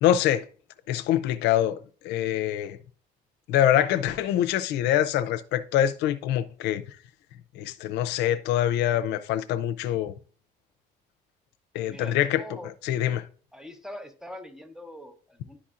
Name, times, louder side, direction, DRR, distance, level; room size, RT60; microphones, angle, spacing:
voice 1, 0.0-0.5 0.9-2.8 3.5-6.8 7.6-10.2 11.7-12.4 12.8-13.2, left 11 dB, 90° left, 0.5 m, -24 dB
voice 2, 11.9-12.7 13.5-15.6, left 1 dB, 5° right, 1.0 m, -42 dB
11.0 x 4.2 x 2.5 m
cardioid pair, 110°, 17 cm